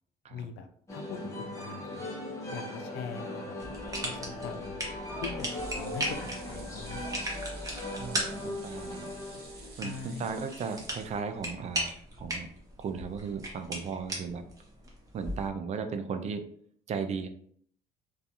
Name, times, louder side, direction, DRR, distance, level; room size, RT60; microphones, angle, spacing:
voice 1, 0.3-2.1 2.5-3.5 4.0-4.9 5.2-7.2 9.8-10.3, left 6 dB, 85° left, 7 dB, 0.4 m, -42 dB
sound 1, 0.9-10.1, left 1 dB, 15° left, 0.8 m, -39 dB
sound 2, 3.6-15.5, right 1 dB, 20° right, 0.8 m, -38 dB
sound 3, 5.4-11.7 12.1-12.2 12.5-12.6, right 3 dB, 70° right, 0.8 m, -52 dB
voice 2, 8.0-9.1 9.8-11.9 12.2-12.5 12.8-14.4 15.1-16.5 16.9-17.3, right 5 dB, 40° right, 8 dB, 0.4 m, -36 dB
2.4 x 2.3 x 2.7 m, 0.62 s
cardioid pair, 110°, 17 cm